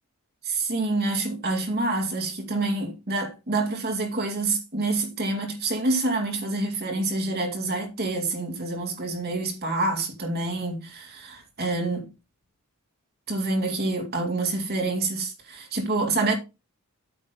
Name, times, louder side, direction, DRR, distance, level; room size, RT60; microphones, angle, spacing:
voice 1, 0.5-12.1 13.3-16.3, right 2 dB, 45° right, 2.3 m, -27 dB
8.9 x 6.2 x 4.0 m
head